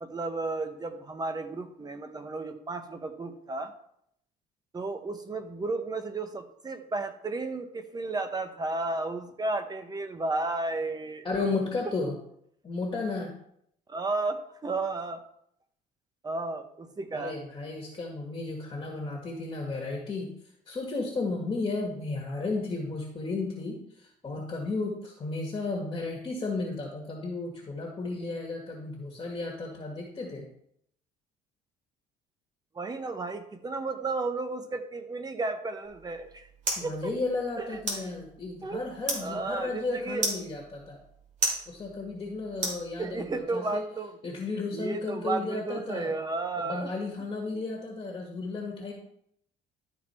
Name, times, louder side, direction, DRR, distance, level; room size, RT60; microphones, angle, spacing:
voice 1, 0.0-3.7 4.7-11.3 13.9-15.2 16.2-17.4 32.7-36.5 36.8-37.1 37.6-37.7 37.9-38.1 38.6-38.8 39.2-40.2 43.0-44.1 44.7-46.9, right 3 dB, 25° right, 8 dB, 1.0 m, -33 dB
voice 2, 11.2-12.1 12.6-13.4 17.1-20.3 20.7-30.4 36.8-41.0 41.7-43.8 44.2-46.1 46.6-48.9, left 3 dB, 25° left, 0 dB, 1.8 m, -33 dB
sound 1, 35.8-43.4, right 2 dB, 45° right, 2.8 m, -36 dB
12.0 x 4.4 x 4.4 m, 0.71 s
cardioid pair, 110°, 17 cm